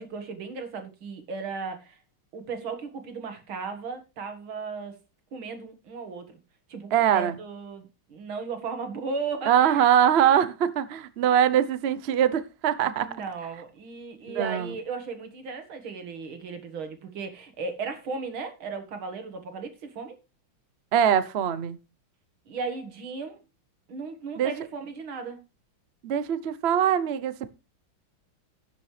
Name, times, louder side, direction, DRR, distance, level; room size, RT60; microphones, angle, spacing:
voice 1, 0.0-2.0 2.3-5.0 5.3-6.4 6.7-9.9 12.8-20.2 22.5-23.4 23.9-25.4, right 4 dB, 85° right, 2.6 m, -36 dB
voice 2, 6.9-7.4 9.5-13.2 14.3-14.7 20.9-21.8 24.4-24.5 26.0-27.5, right 9 dB, 60° right, 0.6 m, -23 dB
17.5 x 6.7 x 3.3 m
omnidirectional pair, 2.2 m